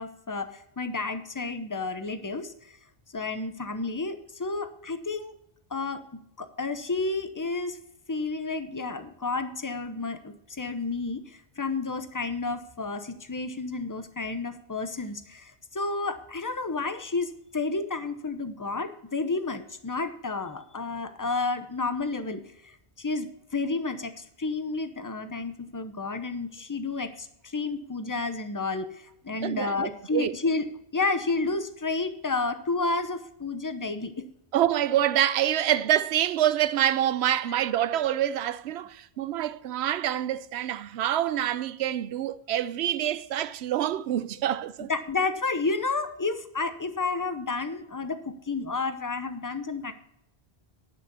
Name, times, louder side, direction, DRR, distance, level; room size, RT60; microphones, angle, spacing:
voice 1, 0.0-2.7 3.1-5.3 5.7-7.8 8.1-30.6 30.9-34.2 44.8-49.9, left 3 dB, 20° left, 0.8 m, -31 dB
voice 2, 29.4-30.3 34.5-44.9, right 11 dB, 85° right, 0.9 m, -26 dB
11.0 x 6.3 x 6.8 m
omnidirectional pair, 1.1 m